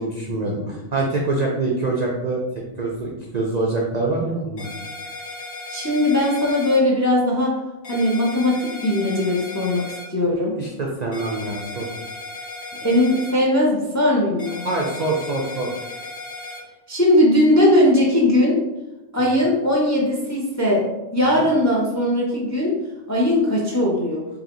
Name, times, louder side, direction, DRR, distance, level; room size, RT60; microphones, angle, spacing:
voice 1, 0.0-2.4 2.8-4.7 10.5-11.9 14.6-15.8 21.3-21.5, right 2 dB, 55° right, -1 dB, 0.5 m, -25 dB
sound 1, 4.6-6.8 7.8-10.0 11.1-13.3 14.4-16.6, left 2 dB, 75° left, 2.1 m, -35 dB
voice 2, 5.7-7.5 7.9-9.8 10.1-10.5 12.8-14.6 16.9-18.6 19.1-20.9 21.1-22.7 23.1-24.2, left 1 dB, 20° left, -2 dB, 0.5 m, -19 dB
4.9 x 2.8 x 3.0 m, 1.0 s
omnidirectional pair, 1.4 m